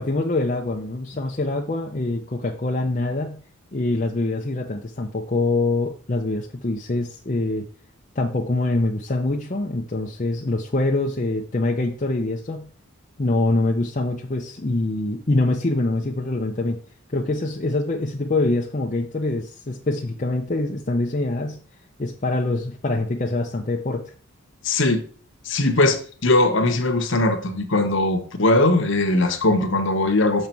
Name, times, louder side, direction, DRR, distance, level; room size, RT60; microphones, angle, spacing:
voice 1, 0.0-3.4 3.7-7.7 8.1-12.7 13.2-16.8 17.1-21.6 22.0-24.1, left 2 dB, 35° left, 0 dB, 0.7 m, -24 dB
voice 2, 24.6-25.0 25.5-30.5, left 2 dB, 55° left, 6 dB, 1.1 m, -20 dB
6.5 x 5.5 x 4.5 m, 0.42 s
head